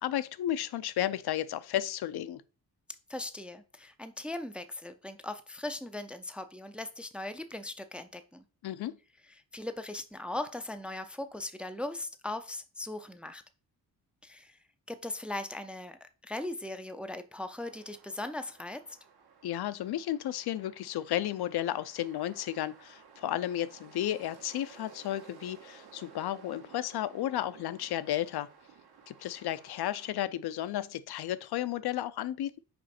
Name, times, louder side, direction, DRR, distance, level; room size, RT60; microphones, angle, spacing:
voice 1, 0.0-2.4 8.6-9.0 19.4-28.5 29.1-32.6, left 12 dB, 80° left, 0.6 m, -33 dB
voice 2, 3.1-8.4 9.5-13.4 14.2-14.6 14.9-18.8, left 2 dB, 5° right, 0.3 m, -39 dB
cars passing, 17.6-30.1, right 6 dB, 80° right, 1.5 m, -56 dB
5.2 x 5.0 x 4.2 m
wide cardioid pair, 150°, 38 cm